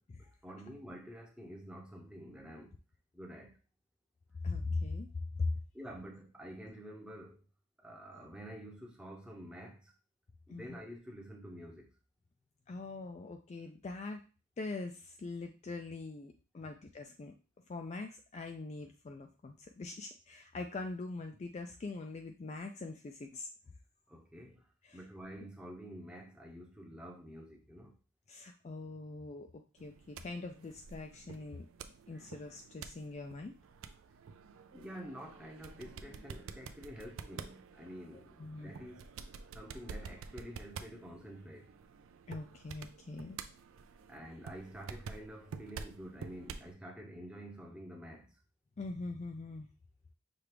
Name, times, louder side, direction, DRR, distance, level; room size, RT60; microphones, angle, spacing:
voice 1, 0.2-2.8 3.1-3.5 5.7-7.4 7.8-9.9 10.5-11.9 16.6-16.7 24.1-24.7 24.9-27.9 32.1-32.3 34.7-39.1 39.5-41.7 44.1-48.3, equal, 5° right, 0 dB, 0.7 m, -49 dB
voice 2, 4.4-5.1 5.4-5.5 10.5-10.8 12.7-14.2 14.6-17.3 17.7-23.5 24.8-25.0 28.3-31.7 32.1-33.5 38.4-38.7 42.3-43.4 48.8-49.7, left 3 dB, 30° left, 4 dB, 0.3 m, -42 dB
sound 1, 29.8-46.7, right 5 dB, 65° right, 0.4 m, -49 dB
5.9 x 2.4 x 3.3 m, 0.33 s
head